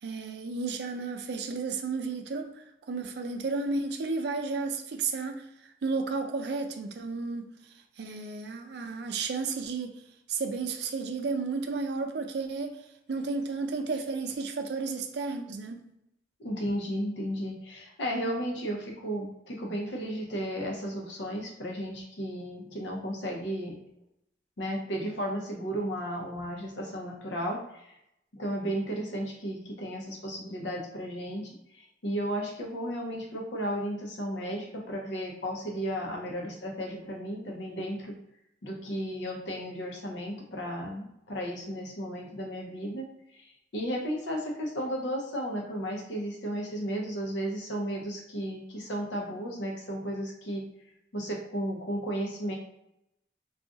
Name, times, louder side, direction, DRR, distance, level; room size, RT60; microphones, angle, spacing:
voice 1, 0.0-5.4 5.8-7.5 8.0-10.0 10.3-12.8 13.1-15.8, right 4 dB, 60° right, 0.4 m, -32 dB
voice 2, 16.4-23.8 24.6-28.0 28.3-38.1 38.6-50.7 51.1-52.5, equal, 75° left, 0.7 m, -34 dB
2.4 x 2.3 x 3.7 m
head